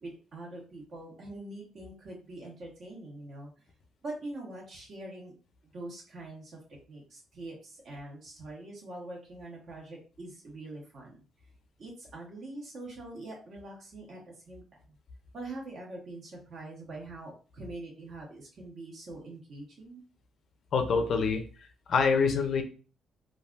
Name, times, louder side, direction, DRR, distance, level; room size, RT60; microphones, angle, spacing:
voice 1, 0.0-3.5 4.0-5.3 5.7-6.6 6.9-11.2 11.8-14.9 15.3-20.0, right 2 dB, 55° right, -2 dB, 1.4 m, -44 dB
voice 2, 20.7-21.4 21.9-22.6, left 5 dB, 60° left, 6 dB, 0.5 m, -25 dB
3.3 x 2.4 x 2.4 m, 0.37 s
cardioid pair, 105°, 0 cm